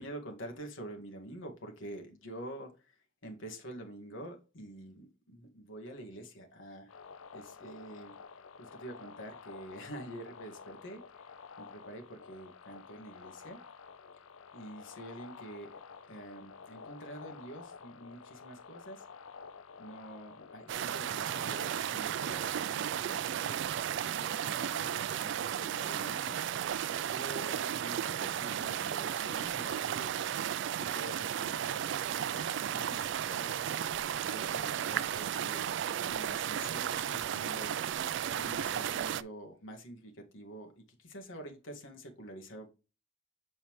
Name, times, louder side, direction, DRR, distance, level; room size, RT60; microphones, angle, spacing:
voice 1, 0.0-2.9 3.2-6.9 7.3-8.2 8.6-11.3 11.6-13.6 14.5-15.8 16.1-19.0 19.8-23.6 24.2-26.5 27.1-30.1 30.8-33.6 34.2-37.8 38.3-42.7, right 1 dB, 70° left, 1.7 m, -47 dB
sound 1, 6.9-21.8, left 5 dB, 90° left, 0.6 m, -51 dB
sound 2, 20.7-39.2, right 9 dB, 60° right, 0.3 m, -34 dB
7.1 x 4.2 x 3.1 m
head